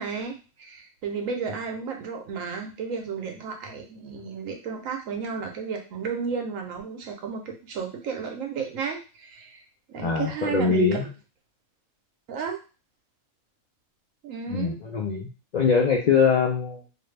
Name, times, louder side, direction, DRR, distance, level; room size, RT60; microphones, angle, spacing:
voice 1, 0.0-9.6 9.9-11.0 12.3-12.6 14.2-14.7, right 5 dB, 80° right, 3 dB, 1.1 m, -33 dB
voice 2, 10.0-11.1 14.5-15.3 15.5-16.8, left 5 dB, 75° left, -1 dB, 0.4 m, -22 dB
2.7 x 2.5 x 3.2 m, 0.33 s
omnidirectional pair, 1.4 m